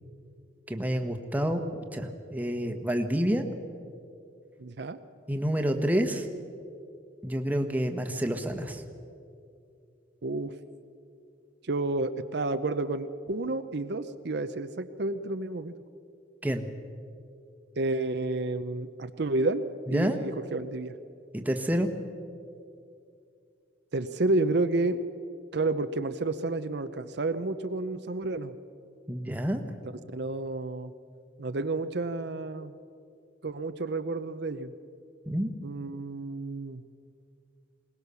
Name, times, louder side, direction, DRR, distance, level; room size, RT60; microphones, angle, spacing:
voice 1, 0.7-3.4 5.3-6.3 7.2-8.8 16.4-16.7 19.9-20.2 21.3-21.9 29.1-29.6 35.3-35.5, equal, 10° right, 5 dB, 1.2 m, -28 dB
voice 2, 4.6-5.0 10.2-10.6 11.6-15.7 17.7-19.6 19.9-20.9 23.9-25.0 25.5-28.5 30.1-30.9 31.4-32.7 33.4-34.7 35.6-36.8, right 2 dB, 60° right, 10 dB, 0.7 m, -30 dB
21.5 x 19.5 x 6.9 m, 2.5 s
head